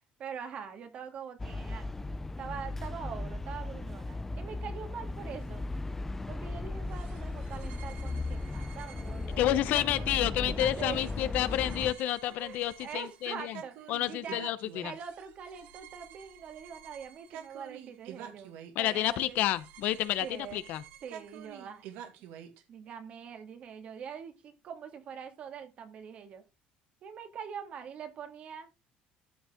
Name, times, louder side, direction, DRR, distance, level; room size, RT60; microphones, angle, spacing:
voice 1, 0.2-1.9 2.4-5.7 6.3-9.6 10.8-11.1 12.4-14.5 14.8-18.5 18.8-19.4 20.2-20.6 21.0-21.9 22.7-26.4 27.0-28.7, right 7 dB, 40° right, 2.2 m, -43 dB
sound 1, 1.4-11.9, left 2 dB, 10° left, 0.4 m, -37 dB
sound 2, 6.9-22.6, right 9 dB, 85° right, 2.0 m, -49 dB
voice 2, 9.4-13.6 13.9-14.9 18.7-20.8, left 13 dB, 60° left, 0.8 m, -30 dB
13.5 x 5.6 x 3.7 m
cardioid pair, 160°, 3 cm